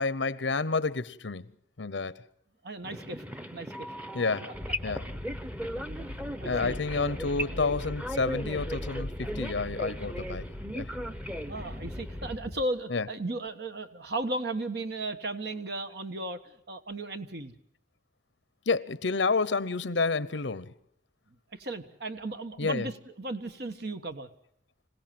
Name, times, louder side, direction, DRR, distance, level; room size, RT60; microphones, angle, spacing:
voice 1, 0.0-1.5 1.8-2.1 4.1-4.5 4.8-5.1 6.4-10.5 10.7-10.9 12.9-13.1 18.7-20.7 22.6-22.9, left 4 dB, 80° left, 0.9 m, -29 dB
voice 2, 2.6-3.2 3.5-3.9 6.4-6.8 11.4-17.5 21.5-24.3, right 2 dB, 60° right, 1.4 m, -35 dB
sound 1, 2.8-12.4, equal, 10° right, 0.9 m, -38 dB
sound 2, 4.5-12.6, left 1 dB, 20° left, 0.8 m, -40 dB
26.5 x 17.0 x 7.7 m
head